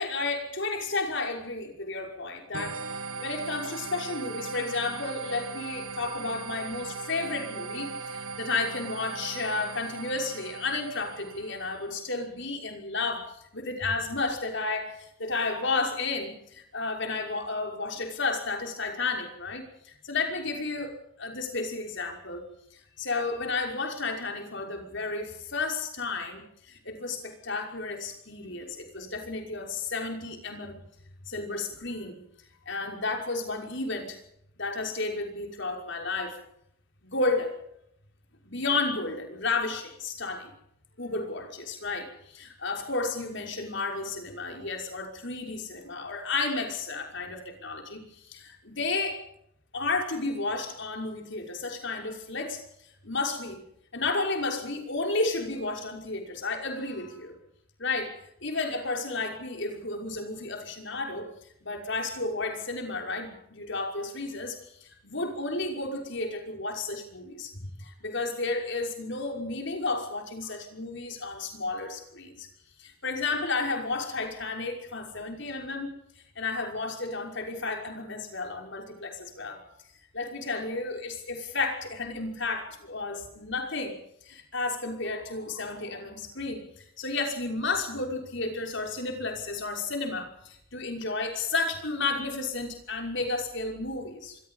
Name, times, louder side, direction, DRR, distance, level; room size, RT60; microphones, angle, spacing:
voice 1, 0.0-22.4 22.7-30.7 31.3-32.2 32.7-34.2 34.6-36.4 37.0-37.6 38.4-40.5 41.0-49.2 49.7-52.6 53.0-53.6 53.9-57.3 57.8-58.2 58.4-61.3 61.6-72.5 72.8-75.9 76.4-79.7 80.1-84.0 84.2-94.4, left 3 dB, 55° left, 3 dB, 5.8 m, -32 dB
sound 1, 2.5-11.9, right 4 dB, 85° right, 1.3 m, -39 dB
26.5 x 21.0 x 5.7 m, 0.72 s
head